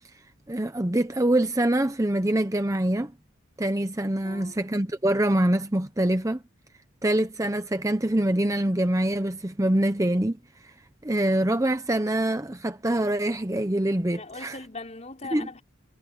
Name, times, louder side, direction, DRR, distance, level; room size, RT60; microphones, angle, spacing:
voice 1, 0.5-3.1 3.6-6.4 7.0-10.7 11.0-14.6 15.3-15.5, right 1 dB, 15° right, 0.8 m, -25 dB
voice 2, 4.2-4.6 14.1-15.6, left 3 dB, 35° left, 4.2 m, -40 dB
head